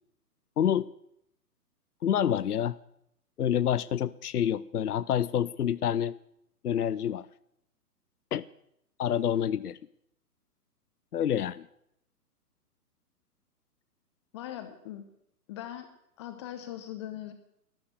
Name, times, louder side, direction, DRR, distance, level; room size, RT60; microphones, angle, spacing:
voice 1, 0.6-0.9 2.0-2.8 3.4-6.1 6.6-7.3 8.3-8.4 9.0-9.8 11.1-11.7, left 9 dB, 70° left, 19 dB, 0.6 m, -27 dB
voice 2, 14.3-15.0 15.5-15.9 16.2-17.3, left 12 dB, 20° left, 8 dB, 0.7 m, -40 dB
13.5 x 12.5 x 6.7 m, 0.76 s
figure-of-eight pair, 125°, 47 cm